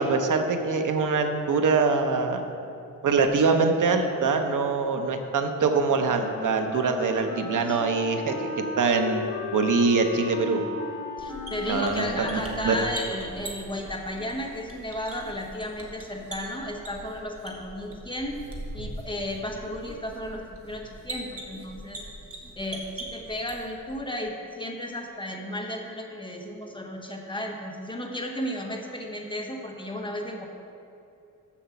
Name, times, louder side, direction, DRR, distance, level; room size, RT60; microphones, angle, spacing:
voice 1, 0.0-2.4 3.0-8.5 8.8-9.2 9.5-10.6 11.7-12.8, right 4 dB, 70° right, 5 dB, 0.9 m, -24 dB
Wind instrument woodwind instrument, 5.7-14.0, left 4 dB, 70° left, 1.3 m, -36 dB
voice 2, 11.2-18.4 18.7-22.0 22.6-30.4, left 1 dB, 15° left, 1 dB, 1.0 m, -34 dB
sound 1, 11.2-23.9, right 1 dB, 45° right, 1.5 m, -42 dB
7.2 x 7.1 x 7.0 m, 2.7 s
wide cardioid pair, 140°, 32 cm